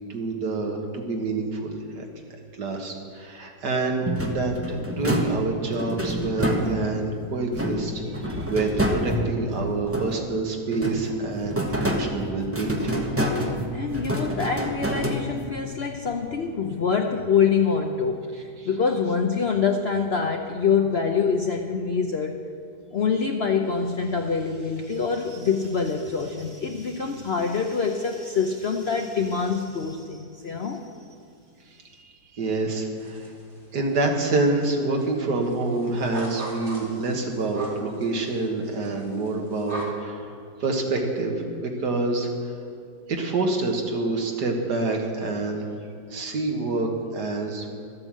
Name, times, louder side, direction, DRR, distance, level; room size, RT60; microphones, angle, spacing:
voice 1, 0.1-2.1 2.6-13.1 18.6-18.7 32.0-33.3 33.7-40.3 40.6-42.3 43.1-45.7 46.1-47.7, right 3 dB, 75° right, 2 dB, 2.1 m, -27 dB
sound 1, 4.0-7.1 7.5-10.4 10.7-15.6, equal, 10° right, 0.8 m, -28 dB
voice 2, 13.7-22.4 22.9-30.9, left 5 dB, 55° left, 3 dB, 0.7 m, -25 dB
sound 2, 33.0-33.6 33.9-34.7 35.0-35.1 35.4-39.8, right 1 dB, 40° right, 3.0 m, -38 dB
13.0 x 8.9 x 7.5 m, 2.3 s
omnidirectional pair, 1.8 m